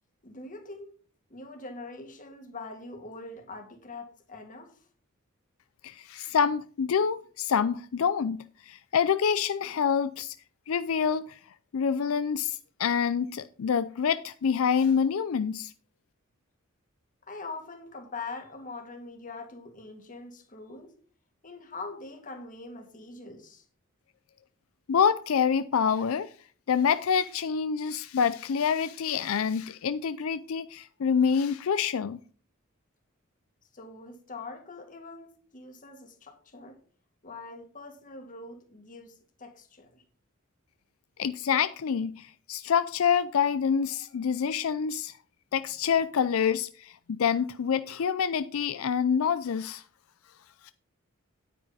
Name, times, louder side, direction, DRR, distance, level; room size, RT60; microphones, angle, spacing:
voice 1, 0.2-0.9 1.3-4.7 17.3-20.9 21.4-23.6 33.7-36.8 37.2-40.0, left 3 dB, 40° left, 2.1 m, -43 dB
voice 2, 5.8-10.3 10.7-11.4 11.7-15.7 24.9-26.3 26.7-32.2 41.2-45.1 45.5-49.8 50.6-50.7, left 7 dB, 80° left, 0.4 m, -27 dB
9.5 x 9.3 x 4.1 m
head